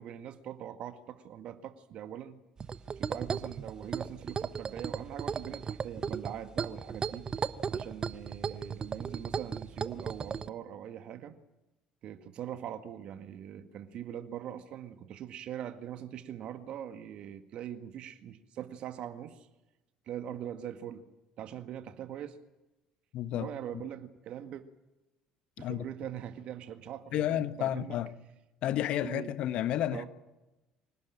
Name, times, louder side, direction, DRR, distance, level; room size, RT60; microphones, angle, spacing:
voice 1, 0.0-2.4 3.0-7.3 7.7-11.4 12.0-19.5 20.1-21.0 21.4-22.4 23.3-24.6 25.6-28.0 28.7-28.8 29.0-29.3 29.9-30.1, right 10 dB, 55° right, 1.9 m, -42 dB
sound 1, 2.6-10.5, right 6 dB, 35° right, 1.1 m, -36 dB
voice 2, 23.1-23.5 23.7-23.8 25.6-25.9 27.1-28.1 28.6-30.1, left 12 dB, 60° left, 1.4 m, -31 dB
25.5 x 18.5 x 9.0 m
hypercardioid pair, 55°, 2 cm